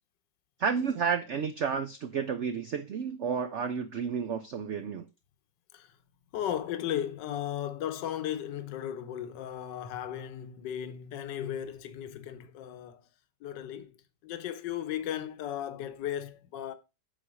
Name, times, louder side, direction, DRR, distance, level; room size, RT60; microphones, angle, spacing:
voice 1, 0.6-5.1, right 6 dB, 70° right, 0.7 m, -31 dB
voice 2, 6.3-13.0 13.4-13.9 14.2-16.7, left 10 dB, 80° left, 1.4 m, -35 dB
7.8 x 4.0 x 6.2 m
omnidirectional pair, 1.9 m